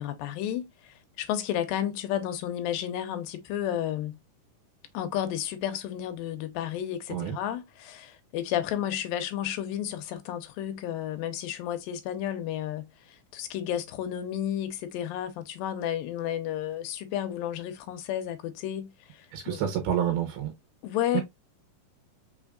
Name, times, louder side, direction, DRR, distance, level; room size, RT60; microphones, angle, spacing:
voice 1, 0.0-4.2 4.9-19.6 20.8-21.2, left 11 dB, 80° left, 2.4 m, -32 dB
voice 2, 19.3-20.5 21.1-21.2, right 10 dB, 85° right, 2.8 m, -28 dB
5.7 x 3.5 x 2.3 m
omnidirectional pair, 4.2 m